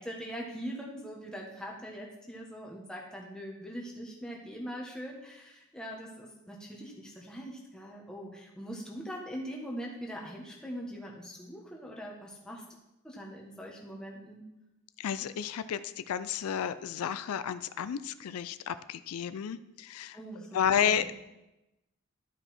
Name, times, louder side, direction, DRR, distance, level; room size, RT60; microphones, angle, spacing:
voice 1, 0.0-12.6 13.0-14.4 20.1-20.9, equal, 5° left, -2 dB, 1.3 m, -42 dB
voice 2, 15.0-20.2 20.5-21.1, left 8 dB, 80° left, 13 dB, 0.4 m, -31 dB
12.0 x 5.3 x 4.3 m, 0.93 s
head